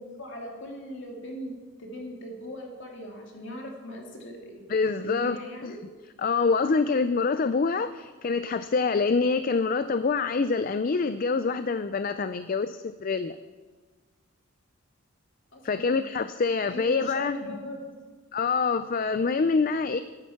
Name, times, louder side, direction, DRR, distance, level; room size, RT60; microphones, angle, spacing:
voice 1, 0.0-1.5 1.8-4.6 5.0-5.8 15.5-16.0 16.7-17.9, left 1 dB, 55° left, 0 dB, 2.8 m, -39 dB
voice 2, 4.7-5.4 5.6-5.7 6.2-13.4 15.6-17.4 18.3-20.0, left 4 dB, 40° left, 12 dB, 0.4 m, -26 dB
13.5 x 10.5 x 5.8 m, 1.4 s
head